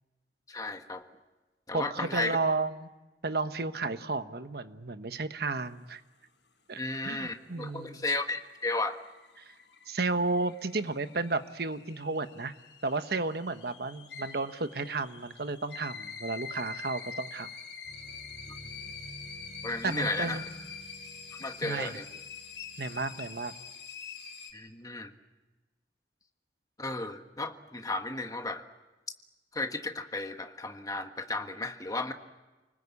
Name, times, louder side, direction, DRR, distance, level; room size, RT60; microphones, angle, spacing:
voice 1, 0.5-1.0 1.7-2.4 6.8-9.0 18.5-18.6 19.6-20.5 21.4-22.0 24.5-25.1 26.8-28.6 29.5-32.1, left 2 dB, 20° left, 6 dB, 1.5 m, -34 dB
voice 2, 1.7-2.9 3.2-6.0 6.7-8.1 9.9-12.6 12.8-17.5 19.8-20.4 21.6-22.0 22.8-23.5, right 3 dB, 60° right, 10 dB, 1.2 m, -33 dB
sound 1, 8.2-24.5, left 6 dB, 75° left, 4.7 m, -45 dB
sound 2, 17.8-23.7, right 1 dB, 10° right, 5.6 m, -52 dB
29.0 x 20.0 x 8.4 m, 1.1 s
head